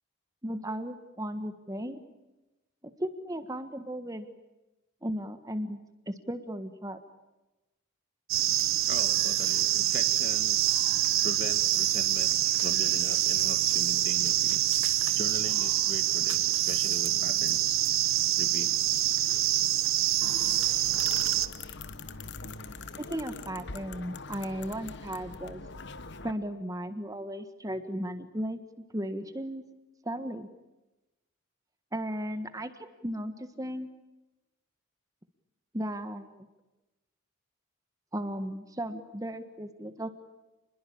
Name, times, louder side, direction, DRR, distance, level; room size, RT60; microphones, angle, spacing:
voice 1, 0.4-2.0 3.0-4.3 5.0-5.8 6.1-7.0 23.0-25.6 26.2-28.6 28.9-29.6 30.0-30.5 31.9-33.9 35.7-36.5 38.1-40.1, equal, 15° right, 9 dB, 1.5 m, -35 dB
sound 1, 8.3-21.5, right 13 dB, 75° right, 1.1 m, -26 dB
voice 2, 8.9-11.0 11.2-12.3 12.6-14.7 15.1-17.8 18.4-18.7, left 1 dB, 40° left, 9 dB, 2.2 m, -41 dB
sound 2, 20.2-26.3, left 3 dB, 55° left, 1.3 m, -42 dB
28.5 x 21.5 x 8.7 m, 1.0 s
head